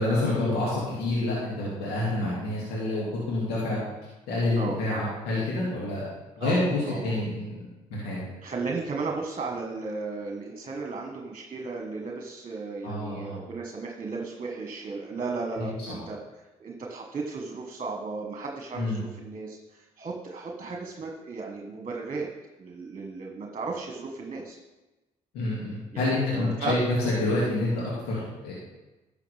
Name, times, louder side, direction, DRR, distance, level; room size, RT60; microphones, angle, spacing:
voice 1, 0.0-3.8 4.3-6.1 6.4-7.6 7.9-8.2 12.8-13.4 15.6-15.7 18.7-19.0 25.3-28.5, left 2 dB, 85° left, -6 dB, 2.4 m, -28 dB
voice 2, 6.4-7.2 8.4-22.3 22.6-24.6 25.9-26.8, right 4 dB, 40° right, 1 dB, 1.5 m, -35 dB
11.5 x 6.6 x 3.5 m, 1.1 s
supercardioid pair, 60°, 16 cm